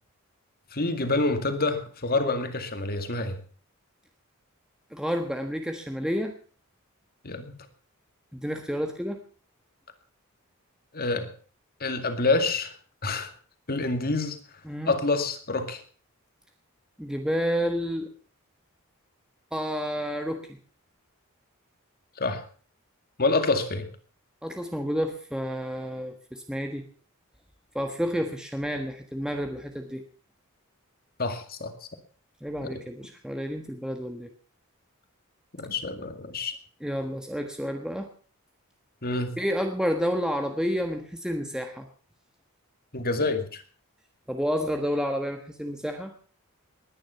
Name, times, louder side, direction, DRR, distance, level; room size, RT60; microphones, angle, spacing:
voice 1, 0.7-3.4 7.2-7.6 10.9-11.3 11.8-12.7 13.0-13.3 13.7-14.4 14.9-15.8 22.2-22.4 23.2-23.9 31.2-31.7 32.7-32.8 35.6-36.5 39.0-39.3 42.9-43.6, left 3 dB, 45° left, 8 dB, 2.2 m, -27 dB
voice 2, 4.9-6.3 8.3-9.2 14.6-14.9 17.0-18.1 19.5-20.6 24.4-26.8 27.7-30.0 32.4-34.3 36.8-38.1 39.4-41.9 44.3-46.1, equal, 5° right, 4 dB, 1.3 m, -30 dB
20.0 x 10.5 x 5.8 m, 0.42 s
head